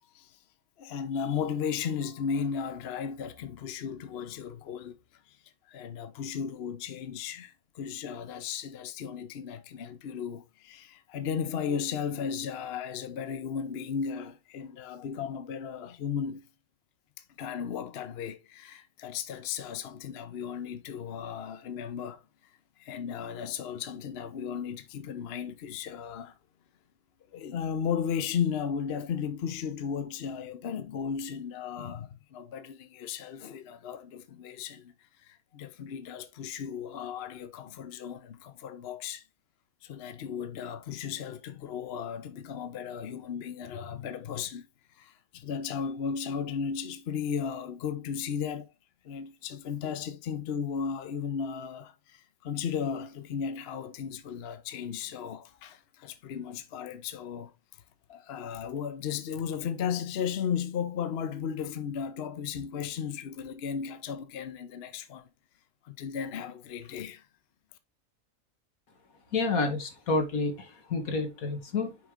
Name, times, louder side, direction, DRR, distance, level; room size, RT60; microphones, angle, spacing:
voice 1, 0.8-5.0 5.3-5.4 5.7-16.4 17.4-22.2 22.8-26.4 27.3-34.9 35.2-39.2 39.8-44.7 45.0-48.7 49.0-57.5 58.1-65.3 65.8-67.2, left 7 dB, 55° left, 0.9 m, -35 dB
voice 2, 69.3-72.0, left 3 dB, 85° left, 1.9 m, -29 dB
6.3 x 4.7 x 3.6 m
omnidirectional pair, 1.5 m